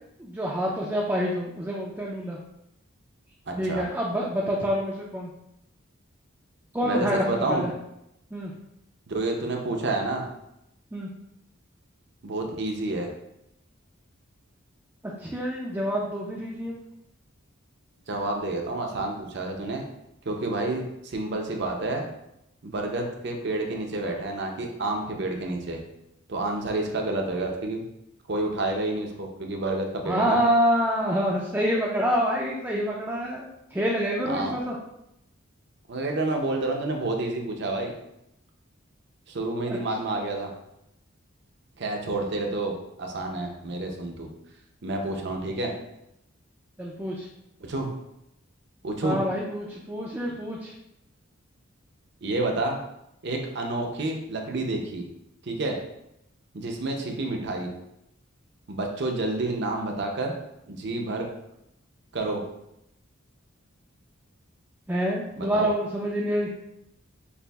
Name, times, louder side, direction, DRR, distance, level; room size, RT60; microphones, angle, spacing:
voice 1, 0.2-2.4 3.6-5.3 6.7-7.7 8.3-8.5 10.9-11.1 15.2-16.7 30.1-34.8 39.7-39.8 46.8-47.3 49.0-50.7 64.9-66.5, equal, 10° right, -4 dB, 0.4 m, -27 dB
voice 2, 3.5-3.8 6.8-7.6 9.1-10.3 12.2-13.1 18.1-19.9 20.3-22.1 22.6-25.8 26.3-27.9 28.3-30.4 34.3-34.6 35.9-37.9 39.3-40.5 41.8-42.7 43.0-44.3 44.8-45.7 47.6-47.9 48.8-49.2 52.2-52.8 53.2-55.0 55.4-55.8 56.5-57.7 58.7-60.3 60.7-61.3 62.1-62.4 65.4-65.7, right 2 dB, 55° right, 2 dB, 0.6 m, -29 dB
6.7 x 2.5 x 2.3 m, 0.83 s
head